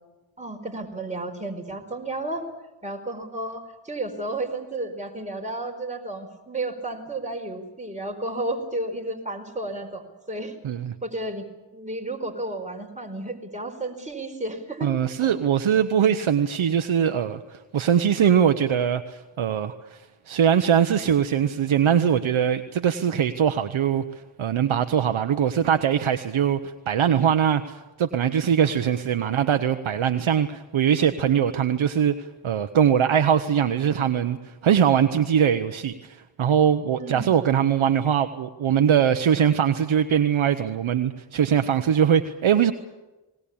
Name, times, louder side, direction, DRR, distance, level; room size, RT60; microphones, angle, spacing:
voice 1, 0.4-2.5 2.8-10.5 11.0-11.4 11.7-14.9 15.2-15.3 29.2-29.4 37.0-37.4, right 2 dB, 15° right, 2 dB, 4.5 m, -32 dB
voice 2, 14.8-20.0 20.3-24.1 24.4-42.7, right 8 dB, 80° right, 8 dB, 1.0 m, -22 dB
20.0 x 20.0 x 8.6 m, 1.1 s
cardioid pair, 45°, 47 cm